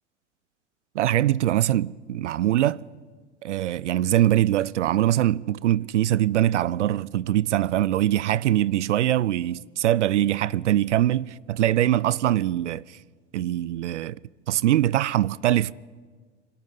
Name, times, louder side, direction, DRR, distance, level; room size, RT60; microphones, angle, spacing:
voice 1, 0.9-2.8 3.4-13.0 13.3-14.2 14.5-15.7, right 13 dB, 70° right, 0.5 m, -23 dB
24.5 x 12.5 x 9.2 m
figure-of-eight pair, 90°, 37 cm